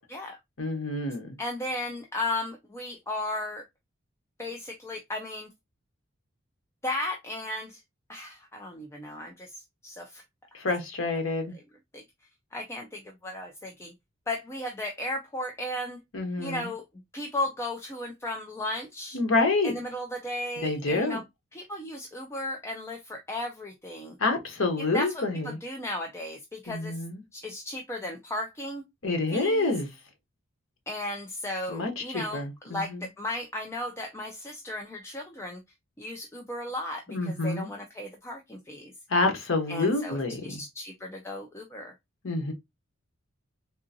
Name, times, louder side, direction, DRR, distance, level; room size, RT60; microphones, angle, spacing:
voice 1, 0.6-1.3 10.5-11.5 16.1-16.7 19.1-19.7 20.6-21.2 24.2-25.6 26.7-27.2 29.0-29.9 31.7-33.1 37.1-37.7 39.1-40.6 42.2-42.5, left 2 dB, 85° left, 0.9 m, -28 dB
voice 2, 1.4-3.6 4.4-5.5 6.8-7.8 8.1-10.2 11.9-12.0 12.5-13.9 14.3-16.0 16.4-16.8 17.1-19.2 19.6-21.2 21.5-24.2 24.9-27.0 27.3-28.8 29.3-29.7 30.9-35.6 36.0-38.9 39.7-41.9, left 1 dB, 15° left, 0.4 m, -35 dB
3.6 x 2.5 x 2.6 m
head